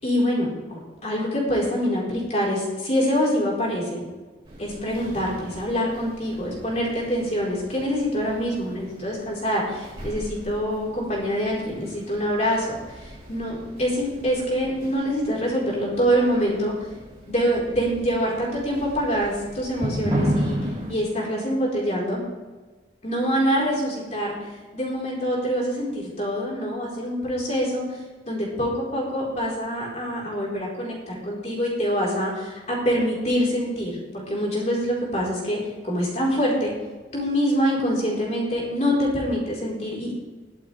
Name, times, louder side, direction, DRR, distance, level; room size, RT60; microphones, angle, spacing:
voice 1, 0.0-4.0 4.6-16.7 17.3-20.6 20.9-22.2 23.0-24.4 24.7-28.0 28.2-36.7 37.1-40.1, equal, 35° left, -4 dB, 4.6 m, -25 dB
sound 1, 4.4-20.9, equal, 30° right, 3.9 m, -35 dB
21.5 x 8.4 x 3.5 m, 1.3 s
head